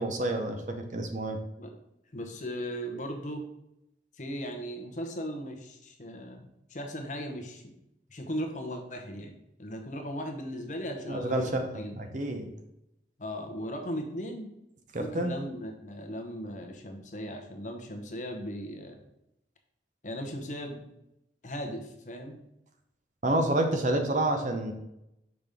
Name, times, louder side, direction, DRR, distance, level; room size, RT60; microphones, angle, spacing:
voice 1, 0.0-1.4 11.1-12.5 14.9-15.4 23.2-24.7, right 1 dB, 45° right, 5 dB, 0.7 m, -29 dB
voice 2, 2.1-3.5 4.2-7.7 8.1-11.4 11.7-12.0 13.2-14.5 15.0-19.0 20.0-20.8 21.4-22.4, equal, 40° left, 4 dB, 0.8 m, -37 dB
5.9 x 5.1 x 3.5 m, 0.85 s
head